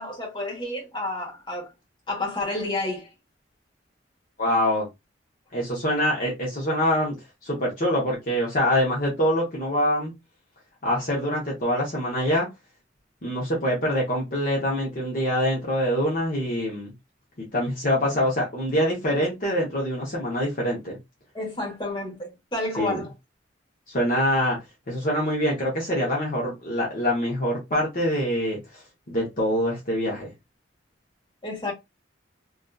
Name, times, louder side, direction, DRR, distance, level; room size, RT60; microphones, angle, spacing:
voice 1, 0.0-1.7 2.1-3.1 21.3-23.1 31.4-31.7, left 2 dB, 25° left, 1.1 m, -30 dB
voice 2, 4.4-4.9 5.5-7.1 7.4-10.1 10.8-12.5 13.2-16.9 17.5-21.0 22.8-23.0 23.9-24.6 24.9-28.8 29.1-30.3, equal, 45° left, 0.8 m, -25 dB
2.6 x 2.3 x 2.2 m
head